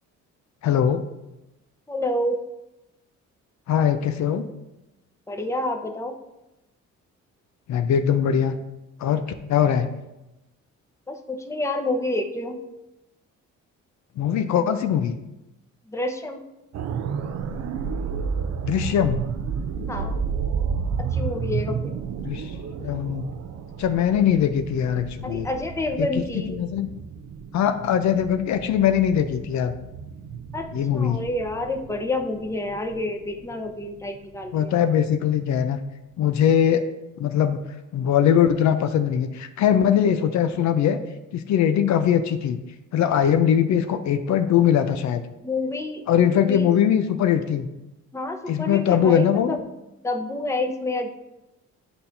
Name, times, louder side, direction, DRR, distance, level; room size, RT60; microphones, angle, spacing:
voice 1, 0.6-1.1 3.7-4.4 7.7-8.5 9.0-9.2 9.5-9.9 14.2-15.2 18.4-19.2 22.2-22.5 22.8-23.3 23.8-25.5 26.0-26.1 26.5-26.9 27.5-29.7 30.7-31.2 34.5-35.8 36.2-36.8 37.2-37.6 37.9-41.0 41.3-42.6 42.9-45.2 46.1-47.7 48.5-49.6, left 9 dB, 70° left, 8 dB, 0.6 m, -21 dB
voice 2, 1.9-2.4 5.3-6.1 11.1-12.6 15.9-16.4 19.9-20.2 21.1-21.9 25.2-26.6 30.5-34.7 45.4-46.0 46.3-46.7 48.1-49.6 50.0-51.1, left 2 dB, 10° left, 5 dB, 0.8 m, -28 dB
sound 1, 16.7-34.6 35.0-35.2, right 6 dB, 60° right, 0.6 m, -32 dB
10.5 x 4.2 x 2.7 m, 0.95 s
cardioid pair, 90°, 30 cm